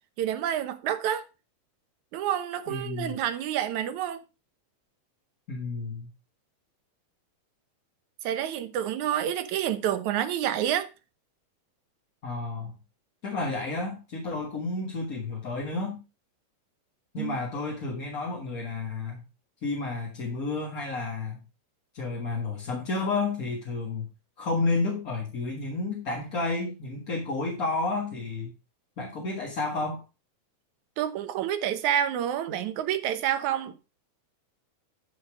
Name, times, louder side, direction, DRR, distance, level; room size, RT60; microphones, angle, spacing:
voice 1, 0.2-1.2 2.1-4.2 8.2-10.9 17.2-17.4 31.0-33.7, right 10 dB, 80° right, 2.4 m, -28 dB
voice 2, 2.7-3.1 5.5-6.1 12.2-12.7 13.2-16.0 17.1-19.2 19.6-21.4 21.9-24.1 24.4-28.5 29.0-30.0, left 3 dB, 35° left, 1.8 m, -31 dB
12.0 x 4.7 x 4.8 m
omnidirectional pair, 3.3 m